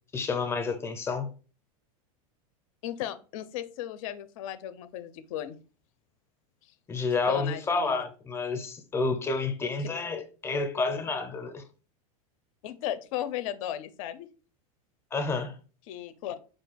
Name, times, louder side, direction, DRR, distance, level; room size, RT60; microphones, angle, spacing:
voice 1, 0.1-1.3 6.9-11.6 15.1-15.5, left 4 dB, 15° left, 0.5 m, -30 dB
voice 2, 2.8-5.6 6.6-6.7 7.3-8.0 12.6-14.3 15.9-16.4, left 11 dB, 65° left, 0.5 m, -35 dB
4.8 x 2.3 x 4.0 m
supercardioid pair, 150°, 19 cm